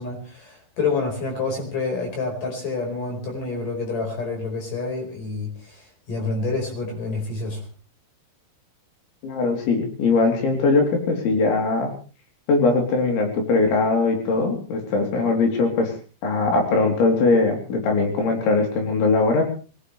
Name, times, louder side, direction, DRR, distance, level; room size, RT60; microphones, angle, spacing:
voice 1, 0.0-7.7, left 3 dB, 45° left, 2 dB, 6.2 m, -28 dB
voice 2, 9.2-11.9 12.5-15.9 16.2-19.4, left 3 dB, 80° left, 2 dB, 5.9 m, -20 dB
24.0 x 18.0 x 3.3 m, 0.37 s
omnidirectional pair, 5.2 m